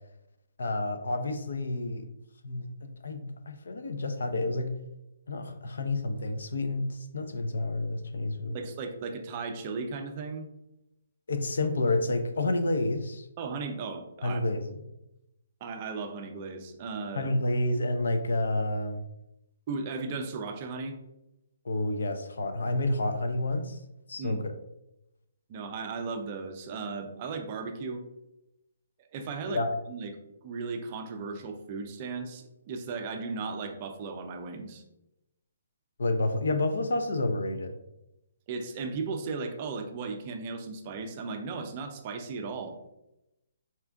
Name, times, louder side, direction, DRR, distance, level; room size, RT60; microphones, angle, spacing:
voice 1, 0.6-2.0 2.4-2.7 3.0-4.7 5.3-8.6 11.3-13.3 14.2-14.6 17.1-19.0 21.6-23.8 24.1-24.5 29.5-29.7 36.0-37.8, left 2 dB, 80° left, 7 dB, 0.6 m, -29 dB
voice 2, 8.5-10.5 13.4-14.4 15.6-17.3 19.7-21.0 24.2-24.4 25.5-28.0 29.1-29.6 29.9-30.1 30.4-34.8 38.5-42.8, right 4 dB, 20° right, 5 dB, 0.4 m, -36 dB
4.3 x 2.4 x 3.4 m, 0.88 s
hypercardioid pair, 180°, 0 cm